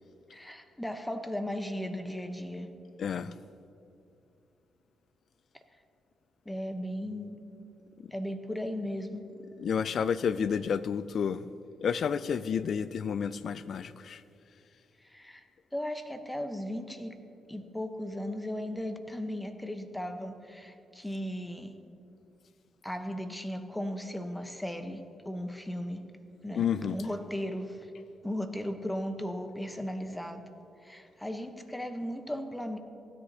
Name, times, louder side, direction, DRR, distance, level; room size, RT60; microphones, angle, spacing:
voice 1, 0.3-2.7 6.5-7.4 8.1-9.3 15.0-15.4 15.7-17.1 17.5-21.7 22.8-26.0 26.4-26.6 26.9-27.9 28.2-30.4 30.8-32.8, equal, 10° left, 8 dB, 0.9 m, -36 dB
voice 2, 3.0-3.3 9.6-11.5 11.8-14.2 26.6-27.0, left 7 dB, 65° left, 16 dB, 0.3 m, -30 dB
16.0 x 9.9 x 2.8 m, 2.7 s
supercardioid pair, 65°, 0 cm